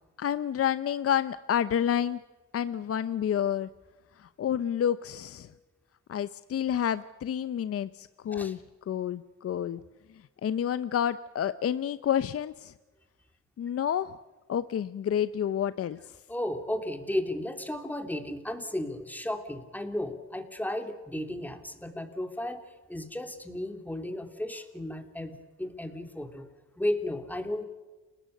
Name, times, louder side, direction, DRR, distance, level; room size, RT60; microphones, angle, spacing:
voice 1, 0.2-2.2 2.5-3.7 4.2-5.5 6.1-8.6 8.9-9.8 10.4-12.7 13.6-14.1 14.5-16.0, left 9 dB, 50° left, 14 dB, 0.8 m, -29 dB
voice 2, 16.3-26.5 26.8-27.6, left 1 dB, 5° left, 6 dB, 3.2 m, -34 dB
30.0 x 18.5 x 6.7 m, 1.2 s
cardioid pair, 90°, 30 cm